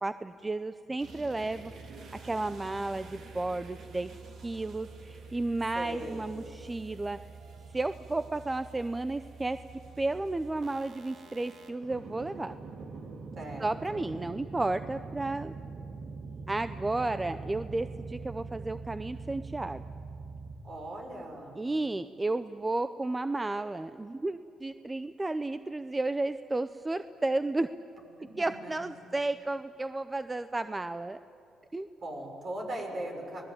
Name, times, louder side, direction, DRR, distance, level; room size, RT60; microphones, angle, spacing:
voice 1, 0.0-4.1 4.4-7.2 7.7-9.6 10.0-12.6 13.6-15.5 16.5-19.8 21.6-27.7 28.4-31.2 31.7-31.9, right 2 dB, 20° right, 12 dB, 0.7 m, -33 dB
sound 1, 1.0-20.6, right 4 dB, 65° right, 3.2 m, -45 dB
voice 2, 5.7-6.4 13.4-14.1 20.6-21.7 28.2-29.0 32.0-33.4, right 1 dB, 50° right, 2 dB, 6.2 m, -40 dB
26.5 x 19.5 x 8.9 m, 2.9 s
cardioid pair, 90°, 0 cm